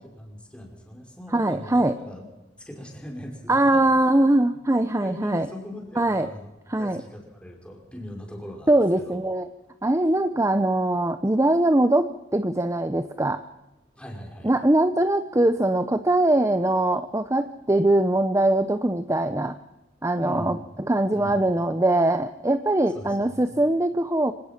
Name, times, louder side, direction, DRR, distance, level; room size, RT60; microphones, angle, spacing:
voice 1, 0.2-2.3 2.6-3.9 5.0-8.7 9.0-9.2 14.0-14.5 20.2-20.6 21.1-21.4 22.9-23.5, left 1 dB, 5° left, 1 dB, 5.3 m, -40 dB
voice 2, 1.3-1.9 3.5-5.5 6.0-6.3 6.7-7.0 8.7-9.5 9.8-13.4 14.4-19.6 20.0-24.3, right 1 dB, 15° right, 10 dB, 0.7 m, -22 dB
25.5 x 18.5 x 5.9 m, 0.98 s
head